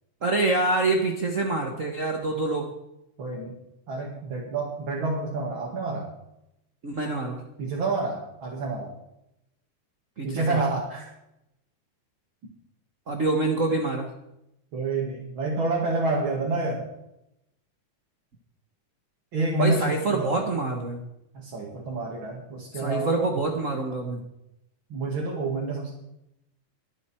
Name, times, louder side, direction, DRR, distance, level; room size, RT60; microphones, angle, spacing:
voice 1, 0.2-2.7 6.8-7.4 10.2-10.6 13.1-14.1 19.6-21.0 22.7-24.2, right 3 dB, 85° right, 3 dB, 0.7 m, -26 dB
voice 2, 3.2-3.6 3.9-6.1 7.6-8.9 10.2-11.1 13.7-13.8 14.7-16.9 19.3-20.5 21.3-23.2 24.9-25.9, right 3 dB, 40° right, -3 dB, 2.8 m, -28 dB
21.5 x 8.2 x 4.5 m, 0.84 s
omnidirectional pair, 3.8 m